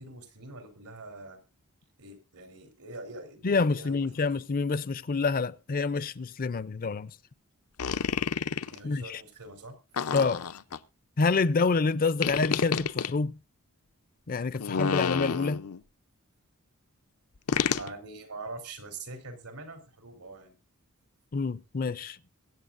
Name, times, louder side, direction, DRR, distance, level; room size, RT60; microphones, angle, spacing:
voice 1, 0.0-1.4 2.0-4.3 8.5-9.8 14.6-14.7 17.8-20.5, right 2 dB, 85° right, 3.7 m, -44 dB
voice 2, 3.4-7.2 8.8-9.2 10.1-10.4 11.2-13.4 14.3-15.6 21.3-22.2, left 4 dB, 40° left, 0.5 m, -27 dB
sound 1, 7.8-8.8 10.0-10.8 12.2-13.1 14.6-15.8 17.5-17.9, left 6 dB, 80° left, 0.7 m, -29 dB
23.0 x 8.5 x 2.5 m
head